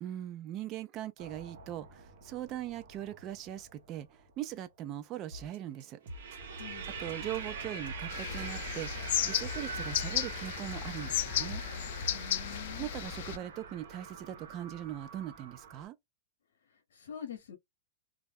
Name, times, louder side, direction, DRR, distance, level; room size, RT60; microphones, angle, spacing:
voice 1, 0.0-4.1 4.4-6.0 7.0-8.9 9.2-11.6 12.8-16.0, right 12 dB, 30° right, 0.4 m, -40 dB
sound 1, 1.2-4.1 6.1-15.8, right 5 dB, 85° right, 0.8 m, -44 dB
sound 2, 5.3-12.8, equal, 55° right, 1.0 m, -49 dB
voice 2, 6.6-6.9 12.1-12.9 16.9-17.6, left 8 dB, 85° left, 0.7 m, -45 dB
sound 3, 8.1-13.4, left 11 dB, 60° left, 0.3 m, -34 dB
2.3 x 2.1 x 3.4 m
supercardioid pair, 155°, 0 cm